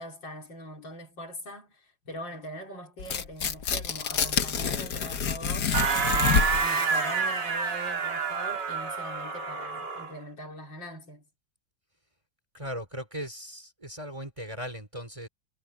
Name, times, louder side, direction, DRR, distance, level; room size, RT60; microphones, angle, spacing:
voice 1, 0.0-11.2, equal, 85° left, 4.5 m, -42 dB
Tearing, 3.0-6.7, left 6 dB, 60° left, 1.8 m, -28 dB
sound 1, 5.7-10.1, right 5 dB, 70° right, 2.8 m, -28 dB
voice 2, 12.5-15.3, equal, 15° right, 3.3 m, -38 dB
omnidirectional pair, 2.0 m